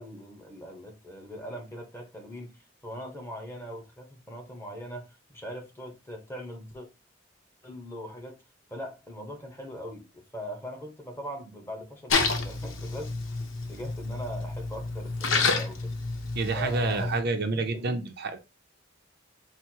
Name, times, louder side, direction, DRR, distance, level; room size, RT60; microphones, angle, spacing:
voice 1, 0.0-6.9 7.6-8.4 8.7-13.4 13.7-16.0 16.5-17.1 17.5-18.1, equal, 15° left, 1.0 m, -41 dB
Splash splatter, 12.1-17.2, left 4 dB, 85° left, 0.8 m, -29 dB
voice 2, 16.4-18.4, right 3 dB, 55° right, 0.5 m, -28 dB
4.3 x 2.0 x 4.4 m
head